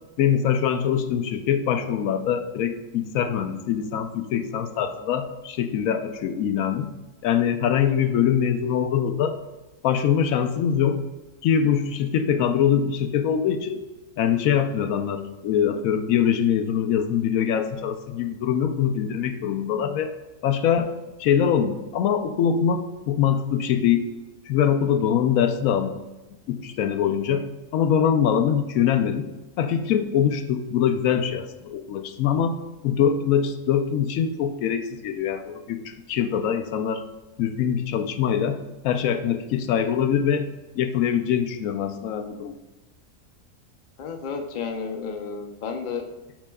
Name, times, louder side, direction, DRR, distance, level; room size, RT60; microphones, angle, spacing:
voice 1, 0.2-6.9 7.2-9.4 9.8-11.0 11.4-13.8 14.2-20.1 20.4-20.9 21.2-24.1 24.5-26.0 26.5-27.5 27.7-29.3 29.6-37.0 37.4-40.5 40.7-42.5, left 8 dB, 90° left, 7 dB, 1.0 m, -23 dB
voice 2, 44.0-46.1, left 5 dB, 45° left, 4 dB, 0.7 m, -32 dB
8.7 x 7.0 x 2.3 m, 1.1 s
omnidirectional pair, 1.4 m